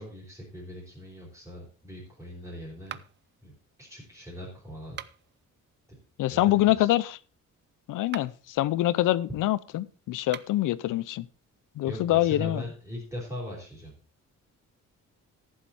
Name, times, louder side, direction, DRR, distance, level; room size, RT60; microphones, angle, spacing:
voice 1, 0.0-3.0 3.4-3.5 3.8-5.0 6.3-6.9 11.9-13.9, equal, 10° right, 4.2 m, -40 dB
sound 1, 2.9-3.4 4.8-5.4 8.0-8.5 10.2-10.7, right 10 dB, 35° right, 0.4 m, -42 dB
voice 2, 6.2-7.2 7.9-11.3 11.8-12.6, left 15 dB, 80° left, 0.7 m, -25 dB
14.0 x 7.4 x 4.3 m
cardioid pair, 170°, 31 cm